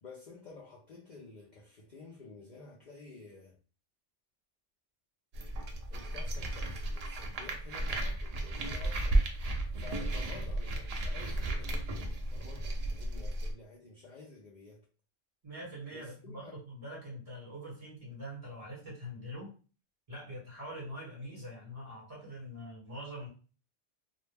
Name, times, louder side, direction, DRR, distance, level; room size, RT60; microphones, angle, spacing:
voice 1, 0.0-3.6 5.9-9.2 9.8-14.9 15.9-16.6, left 3 dB, 55° left, 0.5 m, -51 dB
sound 1, 5.3-13.5, right 1 dB, 75° right, 0.3 m, -34 dB
voice 2, 15.4-19.5 20.1-23.3, equal, 30° right, 1.2 m, -44 dB
2.3 x 2.1 x 3.2 m
omnidirectional pair, 1.2 m